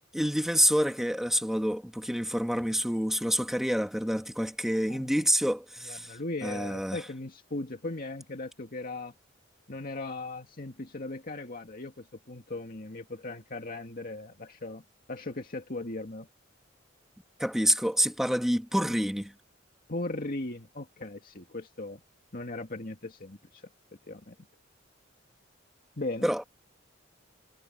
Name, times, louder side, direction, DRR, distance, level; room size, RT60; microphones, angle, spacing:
voice 1, 0.1-6.1 6.4-7.1 17.4-19.3 26.2-26.4, equal, ahead, 1.9 m, -27 dB
voice 2, 4.9-5.2 5.8-9.1 9.7-14.8 15.1-16.3 19.9-22.0 22.3-23.6 24.1-24.4 26.0-26.2, left 2 dB, 45° left, 2.1 m, -38 dB
head